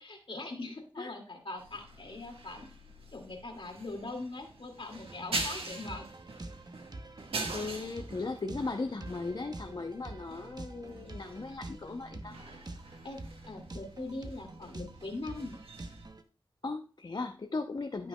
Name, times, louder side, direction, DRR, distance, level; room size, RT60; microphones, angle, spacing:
voice 1, 0.0-2.7 3.1-6.1 13.0-13.2 13.5-15.6 18.0-18.1, left 2 dB, 65° left, 2 dB, 2.2 m, -41 dB
sound 1, 1.6-16.1, right 2 dB, 80° right, 1.4 m, -44 dB
sound 2, 4.9-16.2, right 2 dB, 45° right, 0.9 m, -47 dB
voice 2, 7.2-12.4 16.6-18.1, left 3 dB, 50° left, 6 dB, 0.6 m, -37 dB
12.0 x 5.7 x 2.2 m, 0.36 s
wide cardioid pair, 55°, 10 cm